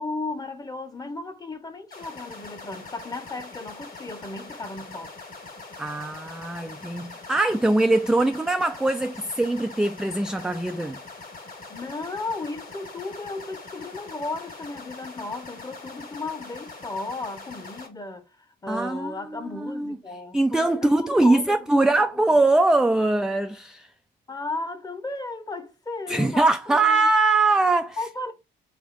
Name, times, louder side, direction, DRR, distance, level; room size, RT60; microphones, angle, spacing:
voice 1, 0.0-5.1 11.7-22.2 24.3-27.1 28.0-28.3, left 3 dB, 20° left, 0.9 m, -35 dB
sound 1, 1.9-17.9, left 3 dB, 45° left, 1.8 m, -42 dB
voice 2, 5.8-11.0 18.7-20.0 20.3-23.9 26.1-28.0, right 2 dB, 5° right, 0.3 m, -22 dB
3.6 x 3.4 x 2.5 m
cardioid pair, 90°, 20 cm